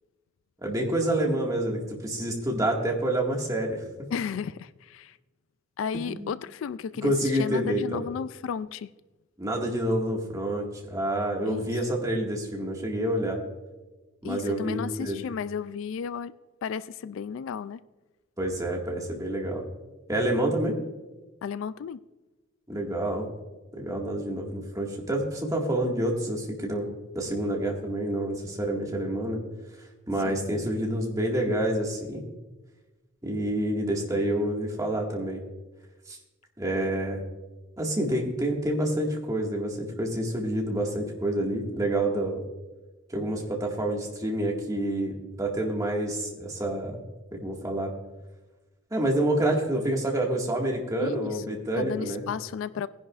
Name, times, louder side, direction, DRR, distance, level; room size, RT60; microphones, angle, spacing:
voice 1, 0.6-3.8 5.9-6.3 7.0-8.0 9.4-13.4 14.2-15.2 18.4-19.6 20.1-20.8 22.7-23.3 23.7-26.9 27.1-29.4 30.1-32.2 33.2-35.4 36.1-36.2 36.6-37.2 37.8-42.4 43.1-47.0 47.3-47.9 48.9-52.2, right 1 dB, 15° right, 1.8 m, -28 dB
voice 2, 4.1-5.2 5.8-8.9 11.5-11.7 14.2-16.3 16.6-17.8 21.4-22.0 30.2-30.5 51.0-52.9, left 6 dB, 70° left, 0.3 m, -33 dB
19.5 x 10.5 x 2.4 m
head